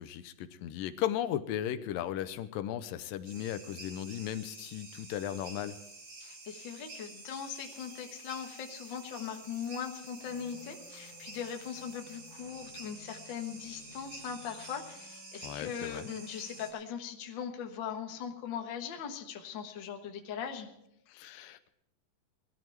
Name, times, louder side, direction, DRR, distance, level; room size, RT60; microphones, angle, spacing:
voice 1, 0.0-5.8 15.4-16.1 21.1-21.7, left 11 dB, 85° left, 12 dB, 2.4 m, -36 dB
sound 1, 3.2-16.7, right 2 dB, 45° right, 3.5 m, -49 dB
voice 2, 6.2-20.7, left 7 dB, 55° left, 4 dB, 1.3 m, -40 dB
sound 2, 10.2-16.7, left 3 dB, 30° left, 3.3 m, -57 dB
19.0 x 13.0 x 4.6 m, 0.76 s
omnidirectional pair, 4.0 m